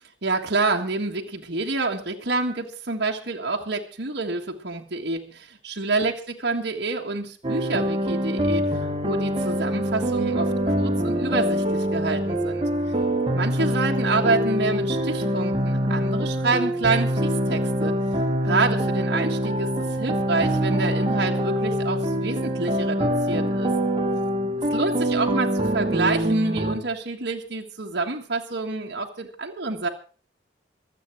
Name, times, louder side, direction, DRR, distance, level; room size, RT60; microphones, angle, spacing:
voice 1, 0.2-12.7 13.3-17.9 18.4-23.7 24.7-29.9, right 3 dB, 60° right, 0 dB, 1.6 m, -28 dB
sound 1, 7.4-26.8, equal, 30° right, 1.9 m, -24 dB
24.0 x 8.5 x 4.6 m, 0.40 s
head